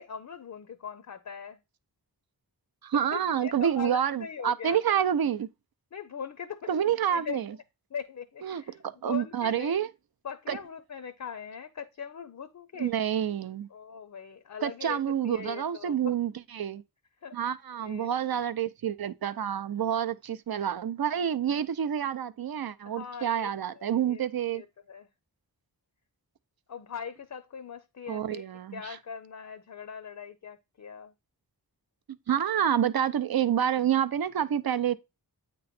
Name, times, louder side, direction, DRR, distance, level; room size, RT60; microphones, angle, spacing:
voice 1, 0.0-1.6 2.9-5.0 5.9-7.4 7.9-9.8 10.2-12.9 13.7-16.1 17.2-17.4 17.8-18.1 22.9-24.2 24.5-25.1 26.7-28.4 28.7-31.1, left 6 dB, 50° left, 0.5 m, -41 dB
voice 2, 2.8-5.5 6.7-7.5 8.4-9.9 10.5-10.6 12.8-13.7 14.6-16.8 17.3-24.6 28.1-29.0 32.3-34.9, right 9 dB, 65° right, 0.5 m, -28 dB
8.6 x 3.1 x 4.2 m
wide cardioid pair, 90°, 39 cm